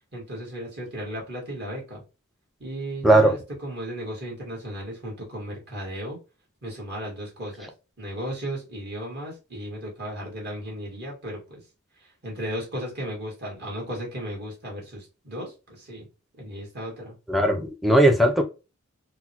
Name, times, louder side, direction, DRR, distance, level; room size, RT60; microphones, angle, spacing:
voice 1, 0.1-2.0 2.6-6.2 6.6-7.7 8.0-11.6 12.0-16.1 16.4-17.1, equal, 50° right, -2 dB, 1.6 m, -35 dB
voice 2, 17.3-18.4, right 1 dB, ahead, 5 dB, 0.5 m, -18 dB
3.9 x 2.1 x 2.8 m, 0.29 s
head